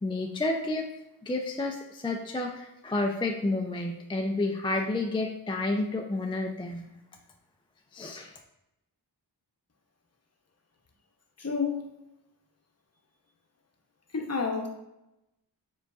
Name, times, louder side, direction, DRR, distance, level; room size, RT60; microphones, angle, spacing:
voice 1, 0.0-0.9 1.2-6.9 7.9-8.3, left 2 dB, 15° left, 2 dB, 0.3 m, -30 dB
voice 2, 11.4-11.8 14.1-14.7, left 5 dB, 35° left, 2 dB, 0.8 m, -29 dB
5.0 x 3.9 x 2.4 m, 0.90 s
wide cardioid pair, 75°, 43 cm